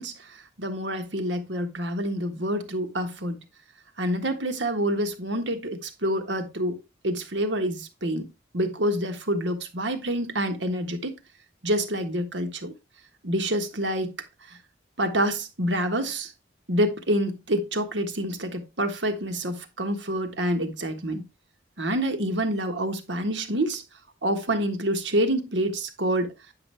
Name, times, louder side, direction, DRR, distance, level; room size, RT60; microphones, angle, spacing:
voice 1, 0.0-3.4 4.0-6.8 7.0-8.3 8.5-11.1 11.6-12.7 13.2-14.1 14.5-14.6 15.0-16.3 16.7-21.2 21.8-23.8 24.2-26.3, right 1 dB, 70° right, 1.5 m, -27 dB
9.5 x 5.9 x 3.4 m
head